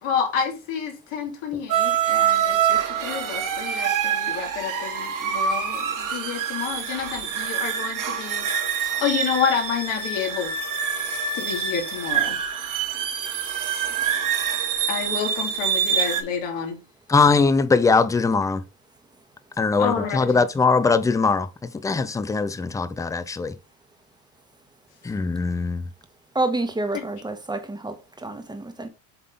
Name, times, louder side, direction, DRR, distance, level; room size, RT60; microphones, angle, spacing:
voice 1, 0.0-10.5 11.3-12.4 14.9-16.8 19.8-20.4 26.9-27.0, left 7 dB, 70° left, 2.6 m, -29 dB
sound 1, 1.7-16.2, right 8 dB, 45° right, 1.7 m, -25 dB
voice 2, 17.1-18.6 19.6-23.6 25.0-25.9, left 4 dB, 10° left, 0.3 m, -21 dB
voice 3, 26.3-28.9, right 2 dB, 10° right, 1.3 m, -28 dB
7.9 x 3.7 x 3.7 m
supercardioid pair, 100°, 46 cm